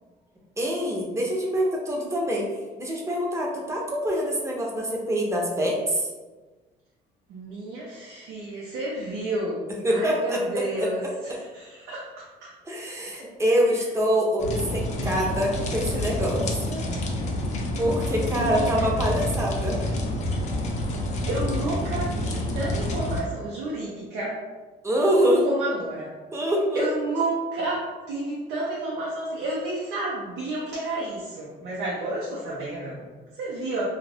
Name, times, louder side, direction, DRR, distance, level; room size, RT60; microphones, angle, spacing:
voice 1, 0.6-2.5 2.8-6.1 9.8-10.4 10.8-10.9 12.7-16.8 17.8-19.8 24.8-25.4 26.3-26.9, equal, 15° right, -2 dB, 0.7 m, -25 dB
voice 2, 7.3-12.5 13.7-13.8 18.3-18.9 21.3-24.4 25.4-26.2 26.7-33.9, right 2 dB, 85° right, -5 dB, 0.7 m, -31 dB
sound 1, 14.4-23.2, left 1 dB, 45° left, 0.5 m, -28 dB
2.4 x 2.4 x 3.3 m, 1.3 s
cardioid pair, 110°, 17 cm